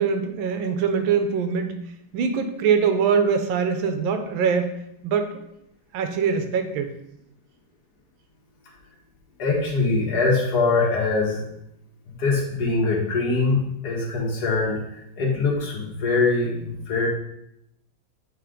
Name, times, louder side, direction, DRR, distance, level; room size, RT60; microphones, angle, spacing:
voice 1, 0.0-1.8 2.1-5.4 5.9-6.9, right 6 dB, 75° right, 7 dB, 1.4 m, -23 dB
voice 2, 9.4-11.4 12.2-17.1, left 3 dB, 50° left, -3 dB, 1.9 m, -23 dB
9.1 x 3.3 x 3.7 m, 0.80 s
omnidirectional pair, 2.2 m